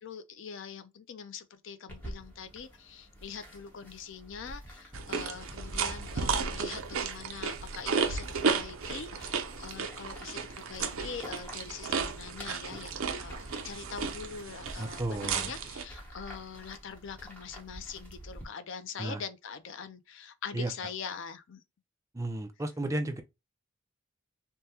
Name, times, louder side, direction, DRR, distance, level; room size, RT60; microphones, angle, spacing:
voice 1, 0.0-21.6, left 6 dB, 60° left, 0.5 m, -43 dB
sound 1, 1.9-18.5, equal, 10° left, 1.0 m, -47 dB
sound 2, 4.9-15.8, right 5 dB, 70° right, 0.6 m, -34 dB
voice 2, 14.8-15.5 19.0-19.2 20.5-20.7 22.1-23.2, right 1 dB, 15° right, 0.4 m, -33 dB
3.4 x 2.2 x 2.7 m
head